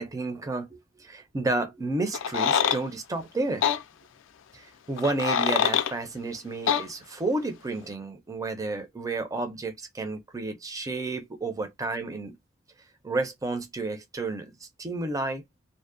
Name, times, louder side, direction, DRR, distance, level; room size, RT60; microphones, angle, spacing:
voice 1, 0.0-3.7 4.5-12.3 13.0-15.4, right 2 dB, 15° right, 0.4 m, -31 dB
sound 1, 2.1-2.8 3.6-3.8 5.0-5.9 6.7-6.8, left 8 dB, 65° left, 0.3 m, -24 dB
2.5 x 2.0 x 2.4 m
head